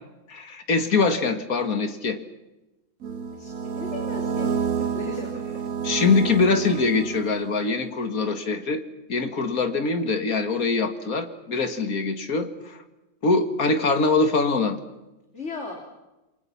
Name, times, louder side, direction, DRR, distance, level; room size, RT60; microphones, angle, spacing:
voice 1, 0.3-2.2 5.8-8.8 9.1-12.8 13.2-14.8, left 4 dB, 75° left, 8 dB, 2.3 m, -23 dB
sound 1, 3.0-7.7, right 6 dB, 85° right, 1.7 m, -29 dB
voice 2, 3.3-4.5 4.8-5.4 15.3-15.8, left 2 dB, 50° left, 1 dB, 3.7 m, -36 dB
28.5 x 23.5 x 5.8 m, 1.0 s
omnidirectional pair, 1.5 m